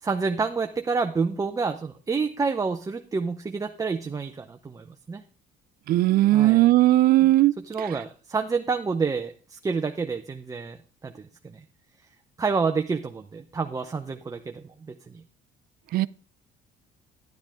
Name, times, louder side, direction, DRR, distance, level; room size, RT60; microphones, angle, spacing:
voice 1, 0.0-5.2 6.3-6.7 7.2-7.3 7.6-11.6 12.4-15.2, right 4 dB, 20° right, 0.6 m, -29 dB
voice 2, 5.9-7.5 15.9-16.1, right 16 dB, 60° right, 0.4 m, -18 dB
10.5 x 9.7 x 3.6 m
cardioid pair, 110°, 17 cm